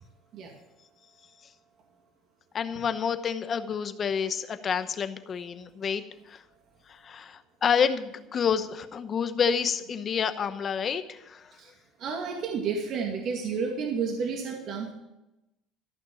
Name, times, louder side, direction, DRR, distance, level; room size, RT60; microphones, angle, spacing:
voice 1, 2.5-6.4 6.9-11.5, left 7 dB, 35° left, 11 dB, 0.9 m, -29 dB
voice 2, 12.0-14.9, right 5 dB, 50° right, 1 dB, 2.3 m, -31 dB
14.5 x 6.1 x 9.2 m, 0.96 s
cardioid pair, 130°, 0 cm